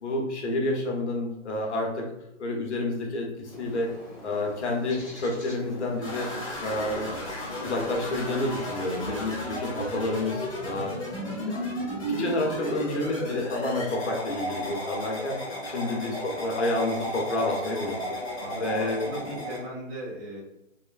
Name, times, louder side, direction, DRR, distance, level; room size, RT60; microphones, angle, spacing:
voice 1, 0.0-2.1 2.4-3.9 4.2-6.3 6.6-7.1 7.6-11.7 12.1-15.4 15.6-18.0 18.3-19.0, left 2 dB, 60° left, 0 dB, 0.8 m, -29 dB
Bird, 3.4-9.4, left 1 dB, 10° right, 0.5 m, -44 dB
voice 2, 5.5-5.8 15.8-16.2 18.4-20.4, equal, 50° right, -6 dB, 1.4 m, -39 dB
sound 1, 6.0-19.6, equal, 25° left, 0.9 m, -34 dB
3.0 x 2.1 x 2.4 m, 0.87 s
hypercardioid pair, 170°, 39 cm